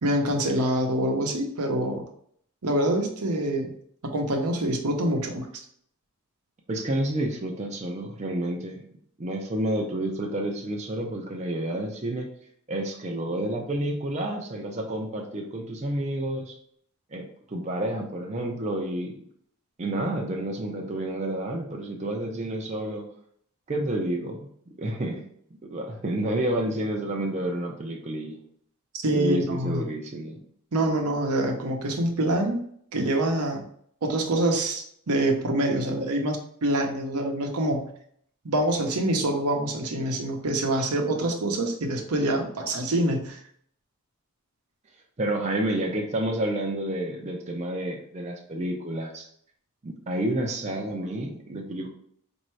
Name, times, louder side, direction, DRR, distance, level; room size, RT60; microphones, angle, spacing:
voice 1, 0.0-2.0 2.6-3.7 4.1-5.5 29.0-29.8 30.7-32.6 32.9-33.6 34.0-37.9 38.4-43.4, right 1 dB, 85° right, 2 dB, 0.8 m, -25 dB
voice 2, 6.7-8.8 9.2-12.3 12.7-16.5 17.1-19.2 19.8-23.0 23.7-24.4 24.8-25.2 25.7-28.4 29.1-30.4 45.2-49.3 49.8-51.9, right 1 dB, 30° right, 1 dB, 0.5 m, -29 dB
4.3 x 2.6 x 3.1 m, 0.65 s
head